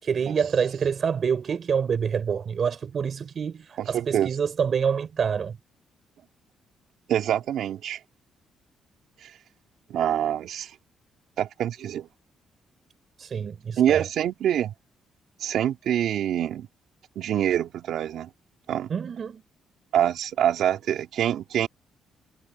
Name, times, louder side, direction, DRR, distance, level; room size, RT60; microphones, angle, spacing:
voice 1, 0.0-5.6 13.2-14.0 18.9-19.4, right 6 dB, 50° right, 5.6 m, -27 dB
voice 2, 3.8-4.3 7.1-8.0 9.2-9.3 9.9-10.7 11.4-12.1 13.8-14.7 15.4-16.7 17.2-18.3 18.7-18.9 19.9-21.7, right 10 dB, 75° right, 2.7 m, -25 dB
cardioid pair, 90°, 0 cm